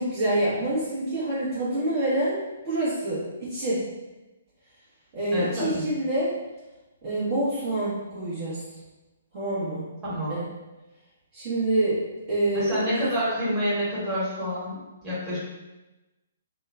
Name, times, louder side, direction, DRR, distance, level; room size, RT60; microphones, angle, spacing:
voice 1, 0.0-2.4 2.6-3.8 5.1-6.3 7.0-8.6 9.3-9.9 10.3-10.4 11.3-12.0 12.3-13.1, right 1 dB, 35° right, -11 dB, 0.9 m, -26 dB
voice 2, 5.3-5.8 10.0-10.4 12.5-15.4, equal, 15° right, -11 dB, 1.3 m, -28 dB
2.8 x 2.1 x 2.4 m, 1.1 s
figure-of-eight pair, 125°, 0 cm